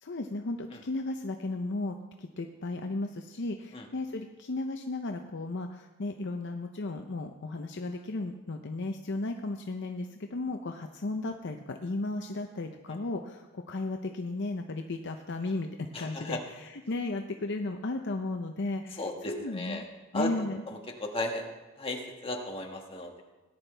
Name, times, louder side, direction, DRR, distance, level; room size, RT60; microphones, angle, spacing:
voice 1, 0.0-19.8 20.1-20.6, left 2 dB, 60° left, 5 dB, 0.7 m, -35 dB
voice 2, 15.9-16.4 19.0-19.8 20.1-20.3 20.7-21.5 21.8-23.2, left 1 dB, 25° left, 1 dB, 1.7 m, -35 dB
18.0 x 11.0 x 3.4 m, 1.1 s
head